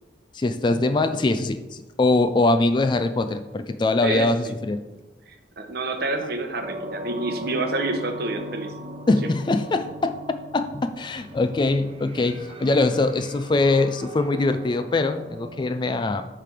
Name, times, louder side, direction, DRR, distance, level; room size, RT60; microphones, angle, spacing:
voice 1, 0.3-4.8 9.1-16.3, left 2 dB, 25° left, 9 dB, 0.3 m, -22 dB
voice 2, 4.0-4.5 5.3-8.7 9.2-9.3, right 2 dB, 55° right, 6 dB, 0.8 m, -28 dB
sound 1, 6.6-15.7, equal, 30° right, 0.6 m, -39 dB
8.4 x 3.3 x 5.9 m, 1.2 s
head